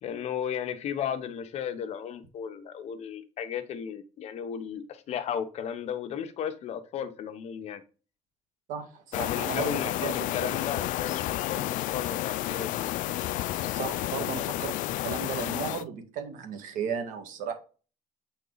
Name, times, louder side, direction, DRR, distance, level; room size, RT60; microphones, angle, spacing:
voice 1, 0.0-7.8 9.1-12.9, left 8 dB, 55° left, 1.0 m, -35 dB
voice 2, 8.7-10.1 10.4-10.6 13.7-17.5, right 6 dB, 85° right, 1.9 m, -35 dB
sound 1, 9.1-15.8, left 15 dB, 85° left, 0.4 m, -31 dB
7.9 x 4.5 x 4.0 m
cardioid pair, 170°, 13 cm